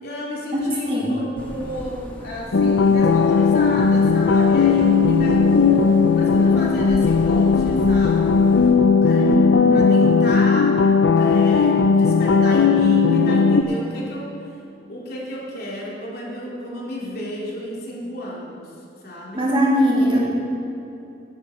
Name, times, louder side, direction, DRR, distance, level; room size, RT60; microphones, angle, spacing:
voice 1, 0.0-8.3 9.0-9.4 9.7-10.8 11.2-14.3 14.9-18.7 19.0-19.5, equal, 60° left, -4 dB, 2.9 m, -32 dB
voice 2, 0.5-1.1 9.1-9.8 19.3-20.3, equal, 30° right, -5 dB, 2.6 m, -20 dB
sound 1, 1.4-8.7, equal, 10° left, 1.9 m, -38 dB
sound 2, 2.5-13.6, left 5 dB, 80° left, 0.5 m, -16 dB
13.0 x 10.5 x 5.0 m, 2.7 s
head